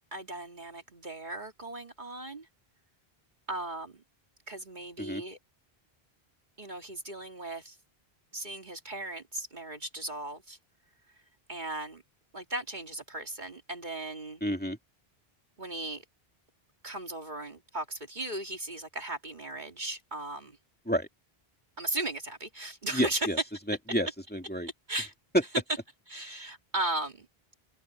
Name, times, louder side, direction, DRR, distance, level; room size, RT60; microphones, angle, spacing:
voice 1, 0.1-2.5 3.5-4.0 4.5-5.4 6.6-7.8 8.3-10.6 11.5-12.0 12.3-14.4 15.6-16.0 16.8-20.6 21.8-23.3 24.9-25.1 26.1-27.3, right 2 dB, 50° right, 2.3 m, -37 dB
voice 2, 14.4-14.8 20.9-21.1 22.9-23.4 23.7-24.7, equal, 10° left, 2.4 m, -30 dB
open air
omnidirectional pair, 1.0 m